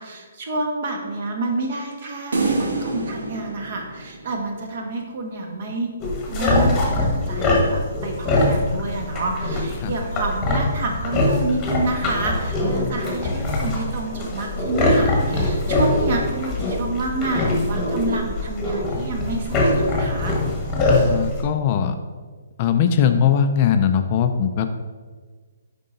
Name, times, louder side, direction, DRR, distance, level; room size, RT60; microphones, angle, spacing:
voice 1, 0.0-5.9 6.3-20.4, right 2 dB, 45° right, 2 dB, 1.4 m, -28 dB
sound 1, 2.3-4.7, right 3 dB, 80° right, 1.3 m, -27 dB
sound 2, 6.0-21.4, left 1 dB, 15° left, 1.3 m, -22 dB
voice 2, 20.8-22.0 22.6-24.7, left 8 dB, 30° left, 8 dB, 0.4 m, -20 dB
7.6 x 5.4 x 3.9 m, 1.5 s
hypercardioid pair, 165°, 0 cm